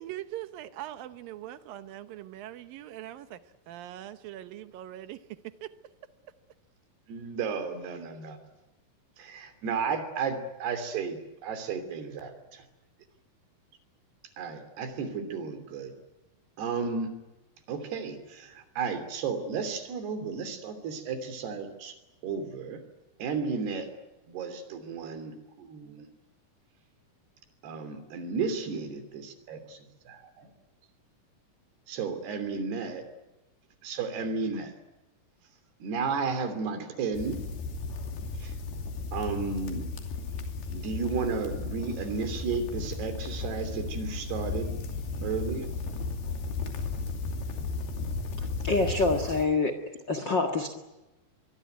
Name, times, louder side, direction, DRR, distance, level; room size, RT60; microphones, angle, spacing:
voice 1, 0.0-3.4 3.7-5.2 5.6-5.7, right 13 dB, 70° right, 2.6 m, -41 dB
voice 2, 7.1-8.4 9.2-12.6 14.4-15.9 16.6-17.2 17.7-22.0 22.2-22.8 23.2-23.9 24.3-26.1 27.6-29.8 30.1-30.5 31.9-33.0 33.8-34.7 35.8-37.4 38.4-38.5 39.1-39.9 40.7-44.7 45.2-45.7, right 5 dB, 90° right, 5.1 m, -33 dB
sound 1, 37.1-49.5, left 4 dB, 80° left, 4.8 m, -35 dB
voice 3, 48.6-49.8 50.1-50.7, left 3 dB, 45° left, 1.6 m, -26 dB
24.5 x 22.5 x 9.4 m
omnidirectional pair, 4.5 m